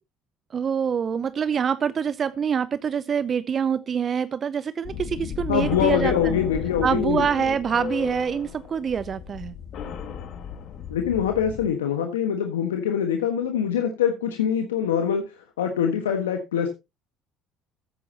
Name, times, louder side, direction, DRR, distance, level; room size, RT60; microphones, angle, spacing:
voice 1, 0.5-6.4 6.8-9.6, right 7 dB, 40° right, 0.6 m, -25 dB
sound 1, 4.8-11.7, left 7 dB, 60° left, 2.0 m, -34 dB
voice 2, 5.5-7.5 10.9-15.2 15.6-16.7, left 8 dB, 90° left, 1.4 m, -24 dB
14.0 x 9.2 x 2.9 m
hypercardioid pair, 65°, 0 cm